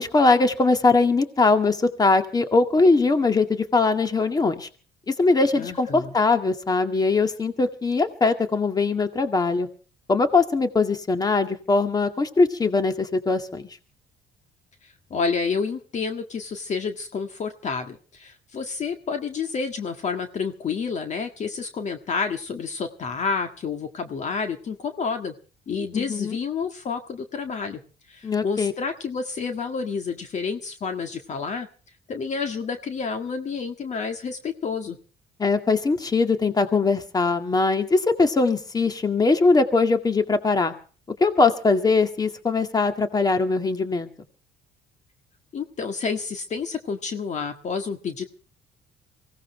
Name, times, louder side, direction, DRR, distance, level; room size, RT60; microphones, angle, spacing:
voice 1, 0.0-4.7 5.1-9.7 10.1-13.6 25.9-26.4 28.2-28.7 35.4-40.7 41.2-44.1, left 3 dB, 25° left, 7 dB, 2.0 m, -21 dB
voice 2, 5.6-6.1 15.1-25.3 25.7-27.8 28.1-31.7 32.1-35.0 45.5-48.2, left 5 dB, 45° left, 6 dB, 1.7 m, -29 dB
24.0 x 17.0 x 3.3 m, 0.40 s
cardioid pair, 110°, 17 cm